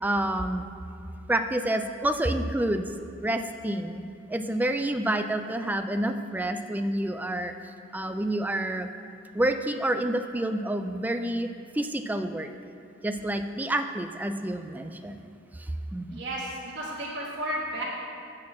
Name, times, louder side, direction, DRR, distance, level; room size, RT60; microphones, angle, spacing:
voice 1, 0.0-0.6 1.3-2.9 3.2-4.0 4.3-7.5 7.9-8.9 9.3-11.5 11.8-12.5 13.0-15.2 15.9-16.2, right 1 dB, 10° right, 7 dB, 0.3 m, -28 dB
voice 2, 16.1-17.8, right 1 dB, 60° right, -5 dB, 1.3 m, -33 dB
8.5 x 4.3 x 7.2 m, 2.5 s
head